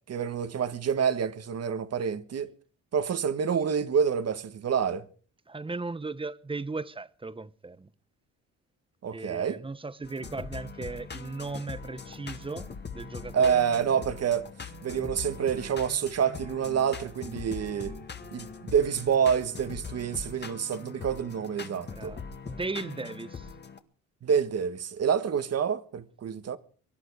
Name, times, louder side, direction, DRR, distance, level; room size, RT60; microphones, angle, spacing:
voice 1, 0.1-2.5 2.9-5.0 9.0-9.6 13.3-14.4 14.8-17.9 18.3-22.1 24.2-26.6, right 7 dB, 55° right, 1.6 m, -27 dB
voice 2, 5.5-7.9 9.1-13.6 21.9-23.5, right 3 dB, 15° right, 1.0 m, -37 dB
sound 1, 10.0-23.8, left 5 dB, 35° left, 1.9 m, -41 dB
23.5 x 11.5 x 4.9 m
cardioid pair, 90°, 30 cm